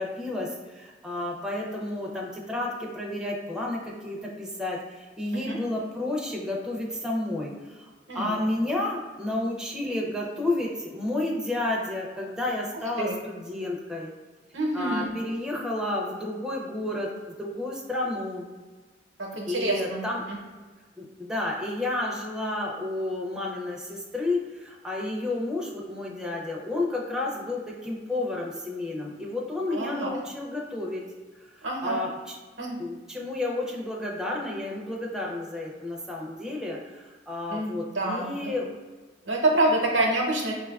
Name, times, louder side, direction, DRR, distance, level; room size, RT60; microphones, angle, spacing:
voice 1, 0.0-7.9 8.1-14.1 14.7-17.1 17.4-18.4 19.5-20.2 21.0-31.0 31.6-32.4 32.8-38.7, left 2 dB, 5° right, -2 dB, 0.4 m, -31 dB
voice 2, 8.1-8.4 13.0-13.1 14.5-15.1 19.2-20.4 29.7-30.2 31.6-32.0 32.6-32.8 37.5-38.5 39.3-40.5, right 2 dB, 85° right, -1 dB, 0.8 m, -27 dB
5.6 x 2.3 x 2.3 m, 1.4 s
head